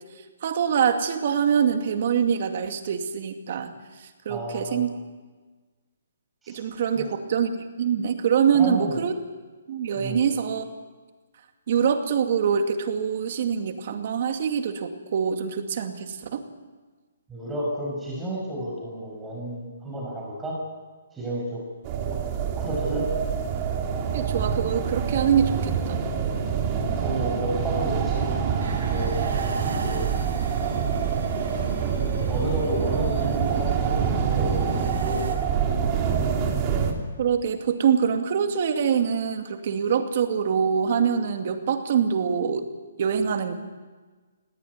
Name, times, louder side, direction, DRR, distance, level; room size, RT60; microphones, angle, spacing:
voice 1, 0.4-3.7 4.0-4.9 6.5-7.5 7.8-9.1 9.7-10.6 11.7-16.4 22.9-23.0 24.1-26.0 37.2-42.7 43.0-43.5, right 7 dB, 45° right, 6 dB, 2.3 m, -24 dB
voice 2, 4.3-4.8 6.4-6.6 6.9-7.1 8.5-9.0 10.0-10.2 17.3-20.6 21.1-21.6 22.3-23.1 26.7-28.3 28.8-29.1 29.8-30.1 32.2-35.2, right 1 dB, 10° right, -3 dB, 5.6 m, -32 dB
sound 1, 21.8-36.9, right 7 dB, 25° right, 2.6 m, -26 dB
sound 2, 28.6-35.4, right 3 dB, 70° right, 6.3 m, -39 dB
19.5 x 17.5 x 9.5 m, 1.4 s
hypercardioid pair, 165°, 0 cm